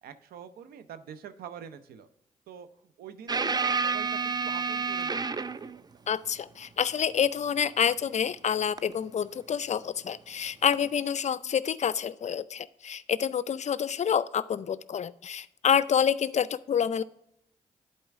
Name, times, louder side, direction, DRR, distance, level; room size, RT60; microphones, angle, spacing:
voice 1, 0.0-2.1 2.5-5.9, right 8 dB, 80° right, 11 dB, 0.6 m, -45 dB
sound 1, 3.3-5.8 8.8-8.9 10.7-10.9, right 4 dB, 25° right, 0.5 m, -29 dB
voice 2, 6.1-17.0, left 8 dB, 50° left, 18 dB, 0.4 m, -28 dB
11.0 x 4.4 x 3.5 m, 0.78 s
hypercardioid pair, 40°, 16 cm